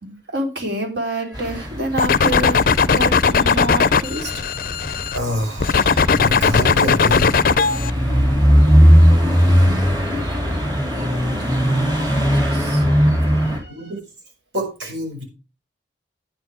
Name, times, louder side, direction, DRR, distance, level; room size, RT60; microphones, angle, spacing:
voice 1, 0.0-4.5 10.0-11.6 11.9-12.9 13.2-13.9, right 1 dB, 60° right, 3 dB, 3.4 m, -29 dB
sound 1, 1.3-13.6, equal, 20° right, 3.8 m, -19 dB
sound 2, 2.0-5.2 5.6-7.9, left 5 dB, 50° left, 0.5 m, -17 dB
voice 2, 5.1-7.4 10.3-10.4 13.7-14.0 14.5-15.2, equal, 75° right, 2 dB, 6.1 m, -26 dB
10.5 x 9.8 x 4.9 m, 0.30 s
head